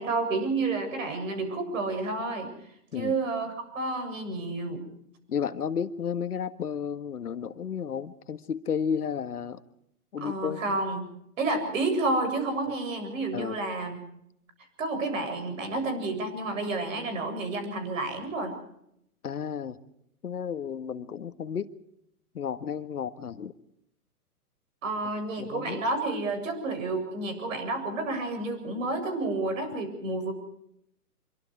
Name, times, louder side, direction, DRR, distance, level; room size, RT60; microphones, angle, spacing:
voice 1, 0.0-2.5 2.9-4.9 10.2-11.0 11.4-14.0 14.8-18.6 24.8-30.3, right 2 dB, 55° right, 8 dB, 7.7 m, -30 dB
voice 2, 5.3-9.6 10.1-10.8 13.3-13.6 19.2-19.8 20.2-21.7 22.3-23.5 25.4-25.8, left 7 dB, 75° left, 11 dB, 1.6 m, -32 dB
25.5 x 23.5 x 4.8 m, 0.76 s
hypercardioid pair, 135°, 45 cm